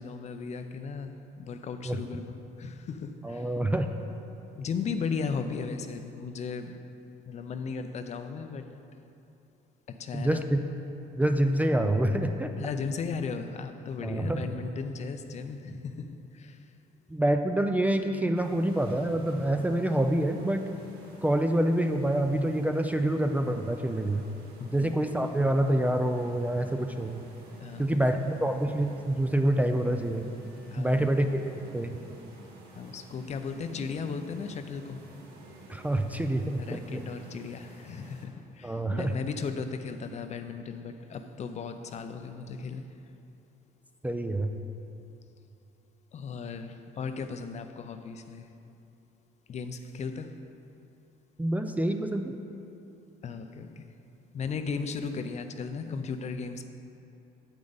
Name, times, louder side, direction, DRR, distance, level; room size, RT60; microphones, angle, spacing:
voice 1, 0.0-3.5 4.6-6.8 7.3-8.7 9.9-10.5 12.6-16.7 24.6-25.1 27.6-28.0 30.7-31.1 32.7-35.0 36.6-42.9 46.1-48.5 49.5-50.4 53.2-53.9 54.3-56.7, left 5 dB, 40° left, 8 dB, 0.5 m, -36 dB
voice 2, 3.2-3.9 10.1-10.6 11.2-12.5 14.0-14.4 17.1-20.6 21.2-24.2 24.7-27.3 27.8-30.3 30.8-31.4 31.7-32.0 35.7-37.0 38.6-39.1 44.0-44.5 51.4-52.3, right 1 dB, 10° right, 6 dB, 0.4 m, -27 dB
sound 1, 18.3-38.3, right 2 dB, 70° right, 1.6 m, -51 dB
8.6 x 8.0 x 4.0 m, 2.8 s
cardioid pair, 110°, 17 cm